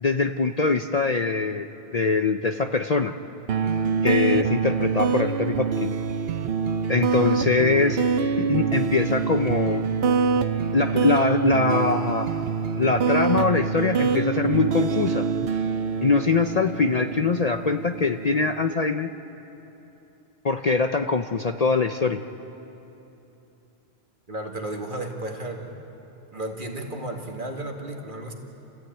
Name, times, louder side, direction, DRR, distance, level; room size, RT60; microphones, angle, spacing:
voice 1, 0.0-1.7 1.9-3.1 4.0-5.9 6.9-8.0 8.4-9.9 10.7-12.3 12.8-15.3 16.0-19.1 20.4-22.2, left 4 dB, 45° left, 7 dB, 0.7 m, -23 dB
sound 1, 3.5-18.6, right 5 dB, 65° right, 0.9 m, -25 dB
voice 2, 24.3-25.8 26.3-28.3, right 1 dB, 50° right, 1 dB, 2.3 m, -33 dB
29.0 x 14.5 x 9.1 m, 3.0 s
omnidirectional pair, 1.1 m